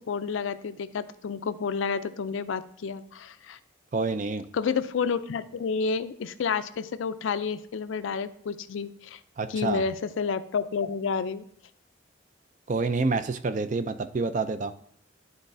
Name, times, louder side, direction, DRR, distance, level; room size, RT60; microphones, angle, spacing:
voice 1, 0.1-3.6 4.5-9.2 9.5-11.5, left 5 dB, 75° left, 13 dB, 0.4 m, -30 dB
voice 2, 3.9-4.5 9.4-9.8 12.7-14.7, right 3 dB, 40° right, 11 dB, 0.4 m, -28 dB
11.0 x 4.0 x 2.6 m, 0.68 s
head